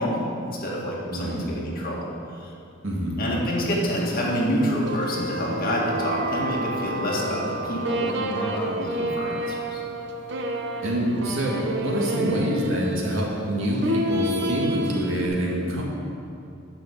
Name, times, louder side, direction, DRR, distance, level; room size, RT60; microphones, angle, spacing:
voice 1, 0.0-2.0 2.4-2.5 3.2-9.8, equal, 50° left, -4 dB, 2.0 m, -27 dB
voice 2, 1.1-1.4 2.8-3.2 10.8-15.8, right 1 dB, 90° right, -3 dB, 2.0 m, -26 dB
sound 1, 4.1-15.3, right 1 dB, 60° right, 0.9 m, -30 dB
10.5 x 5.7 x 6.7 m, 2.6 s
head